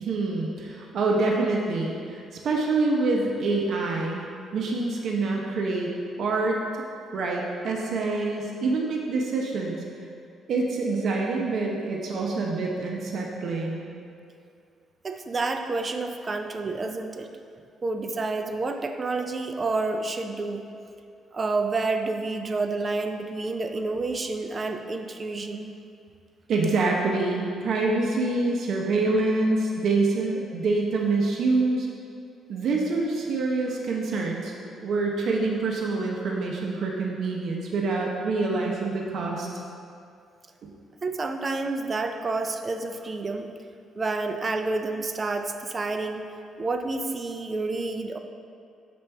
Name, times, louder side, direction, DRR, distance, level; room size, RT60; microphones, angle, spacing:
voice 1, 0.0-4.3 4.5-5.9 6.2-6.6 7.1-9.8 10.5-13.9 26.5-31.9 32.5-39.5 40.6-40.7, right 3 dB, 65° right, -1 dB, 0.8 m, -26 dB
voice 2, 15.0-17.3 17.8-20.6 21.3-25.8 41.0-43.5 44.0-46.3 46.6-48.2, right 3 dB, 35° right, 6 dB, 0.5 m, -29 dB
7.1 x 5.1 x 3.4 m, 2.3 s
cardioid pair, 90°, 0 cm